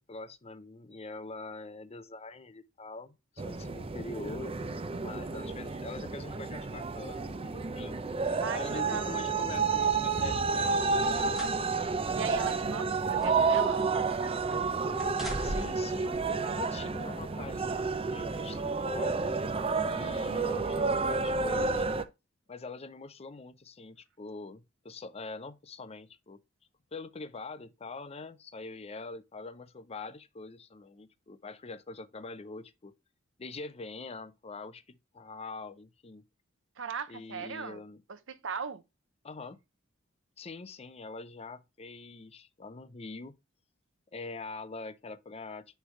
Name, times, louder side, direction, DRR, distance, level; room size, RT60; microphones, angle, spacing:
voice 1, 0.0-7.9 8.5-11.4 15.4-19.2 19.8-21.9 22.5-26.4 26.9-32.9 33.4-34.8 35.1-36.2 37.1-38.0 39.2-39.6 40.4-43.4 44.1-45.7, left 3 dB, 30° left, 0.6 m, -44 dB
sound 1, 3.4-22.0, right 4 dB, 30° right, 0.6 m, -30 dB
voice 2, 8.4-9.1 10.6-10.8 12.1-13.8 36.8-37.8 38.1-38.8, right 6 dB, 65° right, 0.7 m, -38 dB
sound 2, 10.9-11.6 12.0-12.2 12.9-13.9 14.2-14.6 15.0-15.9 16.8-16.9, equal, ahead, 1.6 m, -40 dB
9.8 x 3.3 x 3.2 m
head